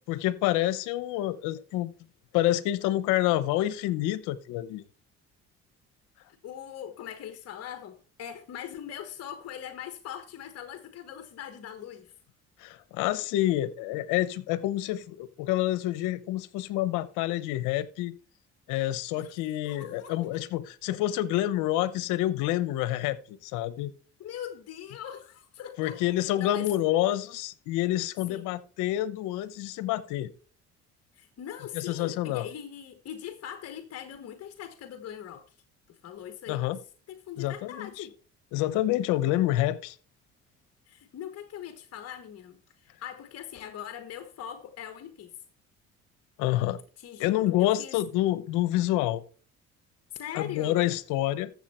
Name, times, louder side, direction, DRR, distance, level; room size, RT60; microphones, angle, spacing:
voice 1, 0.1-1.9 2.3-4.8 12.6-18.1 18.7-23.9 25.8-30.3 31.7-32.5 36.5-36.8 37.4-38.1 38.5-40.0 46.4-46.8 47.2-49.2 50.3-51.5, left 14 dB, 90° left, 0.9 m, -28 dB
voice 2, 6.4-12.1 19.2-19.3 19.6-20.3 24.2-26.0 26.4-26.7 28.3-28.5 31.1-35.4 35.9-36.7 37.1-38.2 40.9-45.3 47.0-47.9 50.1-50.9, left 10 dB, 55° left, 1.3 m, -41 dB
13.5 x 7.2 x 4.3 m
cardioid pair, 90°, 30 cm